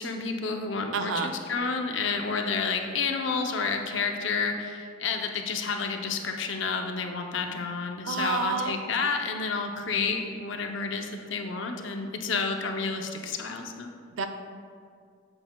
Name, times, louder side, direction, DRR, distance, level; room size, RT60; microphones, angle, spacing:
voice 1, 0.0-13.9, left 4 dB, 65° left, 4 dB, 0.7 m, -30 dB
voice 2, 0.9-1.3 8.1-8.8 14.2-14.3, right 5 dB, 80° right, 7 dB, 0.5 m, -29 dB
8.8 x 7.9 x 2.3 m, 2.2 s
head